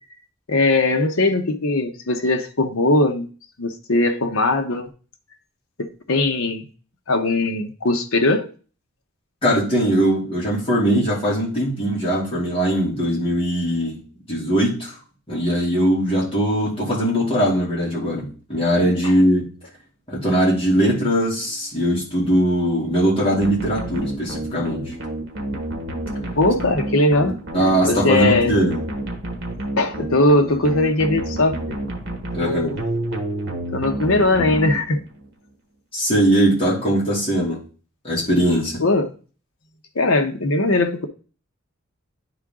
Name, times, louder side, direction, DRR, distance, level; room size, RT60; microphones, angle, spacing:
voice 1, 0.5-3.3 3.6-4.9 5.8-6.6 7.1-8.5 19.0-19.1 26.3-27.4 27.8-28.6 29.8-31.8 33.7-35.0 38.8-39.0 39.9-41.1, left 2 dB, 75° left, 0.9 m, -19 dB
voice 2, 9.4-14.0 14.3-15.0 15.3-19.5 20.1-24.9 27.5-28.8 32.3-32.8 35.9-37.6 38.0-38.8, equal, 25° left, 2.6 m, -20 dB
sound 1, 23.4-35.3, right 1 dB, 50° right, 1.3 m, -29 dB
9.9 x 3.9 x 3.6 m
head